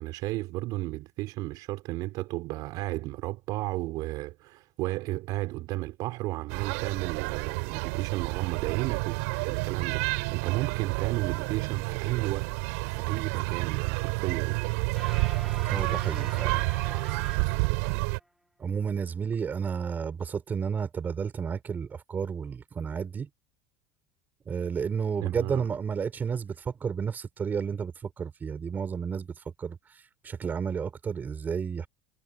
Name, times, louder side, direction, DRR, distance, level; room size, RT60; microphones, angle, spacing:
voice 1, 0.0-12.5 12.9-14.6 25.2-25.7, right 19 dB, 55° right, 5.4 m, -33 dB
sound 1, 6.5-18.2, right 31 dB, 80° right, 4.3 m, -30 dB
sound 2, 15.0-18.2, right 1 dB, ahead, 4.0 m, -46 dB
voice 2, 15.6-16.6 18.6-23.3 24.5-29.8 30.2-31.9, right 6 dB, 25° right, 5.8 m, -32 dB
cardioid pair, 140°, 8 cm